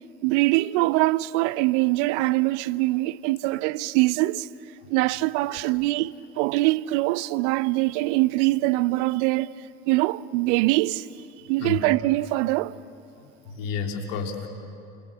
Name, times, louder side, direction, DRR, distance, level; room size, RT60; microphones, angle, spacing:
voice 1, 0.2-4.5 4.9-9.5 9.9-11.1 11.5-12.8, right 19 dB, 60° right, 0.7 m, -23 dB
voice 2, 13.5-14.5, left 5 dB, 65° left, 3.4 m, -30 dB
29.0 x 26.5 x 6.8 m
hypercardioid pair, 75°, 41 cm